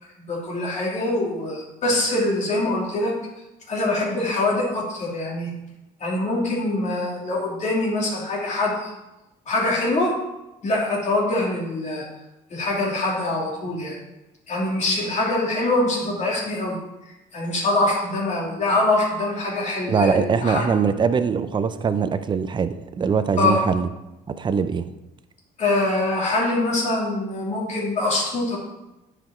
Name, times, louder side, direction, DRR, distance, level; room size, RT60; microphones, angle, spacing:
voice 1, 0.3-3.1 3.7-5.5 6.0-8.9 9.5-10.1 10.6-12.1 12.5-14.0 14.5-16.8 17.3-20.7 23.4-23.6 25.6-28.6, left 2 dB, 45° left, -3 dB, 2.7 m, -24 dB
voice 2, 19.9-23.9 24.3-24.9, right 6 dB, 25° right, 11 dB, 0.5 m, -22 dB
9.6 x 5.1 x 4.3 m, 0.98 s
cardioid pair, 110°, 17 cm